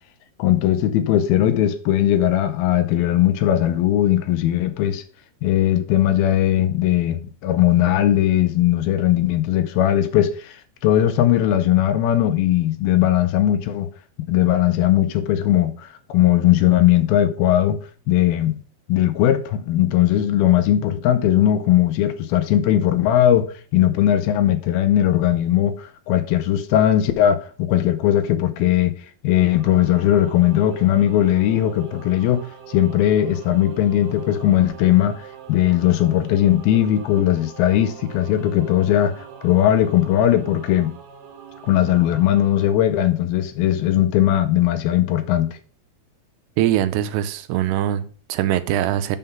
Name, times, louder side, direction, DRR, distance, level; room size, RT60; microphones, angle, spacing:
voice 1, 0.4-5.0 5.4-13.9 14.3-17.8 18.1-18.5 18.9-28.9 29.2-40.9 41.6-45.5, left 12 dB, 75° left, 2.4 m, -19 dB
Singing / Musical instrument, 29.4-42.7, right 9 dB, 70° right, 2.3 m, -42 dB
voice 2, 46.6-49.2, right 12 dB, 85° right, 2.7 m, -22 dB
6.6 x 5.6 x 5.7 m
omnidirectional pair, 4.7 m